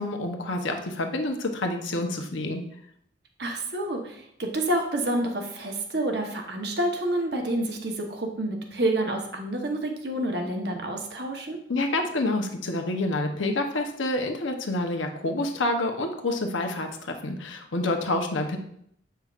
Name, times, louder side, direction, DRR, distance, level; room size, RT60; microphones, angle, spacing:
voice 1, 0.0-2.6 11.7-18.6, left 2 dB, 80° left, 4 dB, 0.9 m, -28 dB
voice 2, 3.4-11.6, right 1 dB, 55° right, 2 dB, 1.0 m, -28 dB
8.1 x 5.7 x 2.5 m, 0.70 s
head